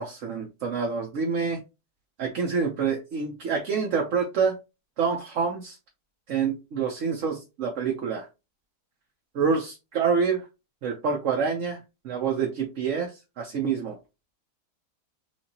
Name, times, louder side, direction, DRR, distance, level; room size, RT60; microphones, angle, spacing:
voice 1, 0.0-1.6 2.2-4.6 5.0-5.8 6.3-8.3 9.3-10.4 10.8-11.8 12.0-13.1 13.4-14.0, right 6 dB, 55° right, 0 dB, 1.1 m, -27 dB
6.0 x 2.7 x 2.9 m, 0.26 s
omnidirectional pair, 1.8 m